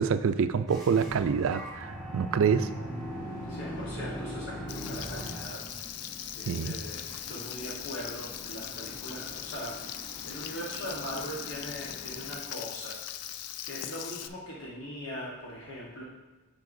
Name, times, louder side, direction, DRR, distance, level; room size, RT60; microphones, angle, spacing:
voice 1, 0.0-2.7 6.5-6.8, right 6 dB, 60° right, 11 dB, 0.3 m, -26 dB
sound 1, 0.7-5.6, equal, ahead, 1.4 m, -39 dB
sound 2, 2.2-12.4, equal, 40° left, 1.1 m, -50 dB
voice 2, 3.5-5.6 6.3-12.9 13.6-16.0, equal, 65° left, -5 dB, 1.2 m, -40 dB
Frying (food), 4.7-14.3, left 11 dB, 90° left, 0.4 m, -40 dB
10.5 x 4.6 x 2.6 m, 1.2 s
head